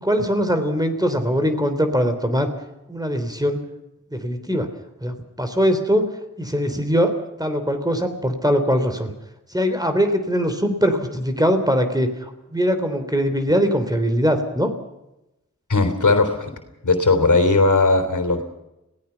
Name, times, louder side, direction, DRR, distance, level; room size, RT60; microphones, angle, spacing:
voice 1, 0.0-2.5 2.9-3.6 4.1-4.7 5.0-6.1 6.4-7.1 7.4-9.1 9.5-14.7, equal, 10° right, 7 dB, 3.4 m, -21 dB
voice 2, 15.7-16.5 16.8-18.4, left 3 dB, 70° left, 7 dB, 3.5 m, -18 dB
26.5 x 17.5 x 5.8 m, 0.93 s
wide cardioid pair, 50°, 31 cm